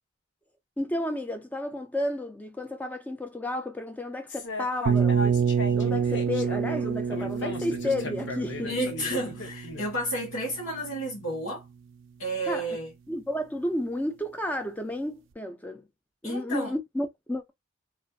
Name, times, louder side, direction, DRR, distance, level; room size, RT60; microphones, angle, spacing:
voice 1, 0.8-5.4 5.7-8.9 12.5-12.7 13.1-15.9 16.2-17.5, left 1 dB, 10° left, 0.3 m, -32 dB
sound 1, 4.3-9.8, left 2 dB, 60° left, 0.7 m, -37 dB
sound 2, 4.9-10.6, right 6 dB, 70° right, 0.3 m, -27 dB
voice 2, 8.6-11.6 12.2-12.9 16.2-16.7, right 1 dB, 85° left, 1.1 m, -31 dB
2.4 x 2.4 x 2.3 m
head